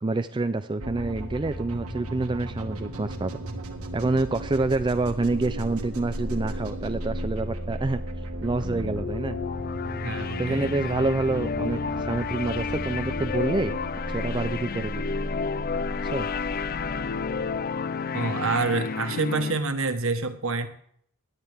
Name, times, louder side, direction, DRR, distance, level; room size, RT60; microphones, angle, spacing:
voice 1, 0.0-3.4 3.9-8.0 8.4-9.4 10.4-13.8 14.1-15.0 16.0-16.3, right 2 dB, 20° right, 9 dB, 0.4 m, -27 dB
sound 1, 0.8-18.5, right 1 dB, 85° right, 1.6 m, -35 dB
sound 2, 8.5-19.6, left 5 dB, 45° left, 0.4 m, -31 dB
voice 2, 10.0-10.7 18.1-20.7, right 3 dB, 65° right, 8 dB, 1.4 m, -27 dB
17.5 x 10.5 x 3.5 m, 0.64 s
head